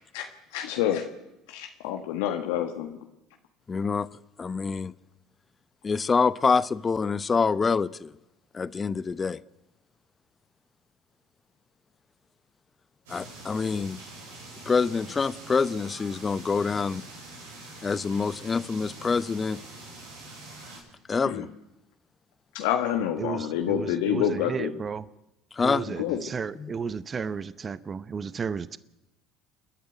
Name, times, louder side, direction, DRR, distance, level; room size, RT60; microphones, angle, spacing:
voice 1, 0.1-1.0 1.5-3.0 21.2-21.5 22.5-24.7 26.0-26.2, left 10 dB, 80° left, 1.5 m, -28 dB
voice 2, 3.7-4.1 4.4-4.9 5.8-8.1 8.5-9.4 13.1-14.0 14.7-17.0 17.8-19.6 21.1-21.5 25.5-25.9 26.6-26.7, left 5 dB, 30° left, 0.8 m, -26 dB
sound 1, 13.1-20.8, right 2 dB, 85° right, 6.9 m, -45 dB
voice 3, 23.2-25.0 25.6-28.8, right 6 dB, 35° right, 0.8 m, -33 dB
29.0 x 10.5 x 9.0 m
hypercardioid pair, 70°, 0 cm